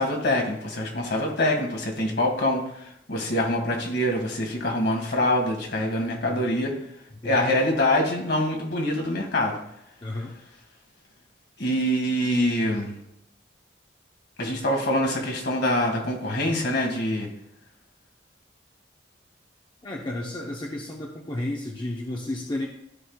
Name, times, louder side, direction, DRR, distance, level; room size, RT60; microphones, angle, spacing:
voice 1, 0.0-6.7 7.2-9.6 11.6-12.9 14.4-17.3, left 1 dB, 60° left, 1 dB, 2.0 m, -25 dB
voice 2, 7.2-7.6 10.0-10.3 19.8-22.7, left 1 dB, 25° left, -1 dB, 0.9 m, -32 dB
14.0 x 5.6 x 2.4 m, 0.78 s
head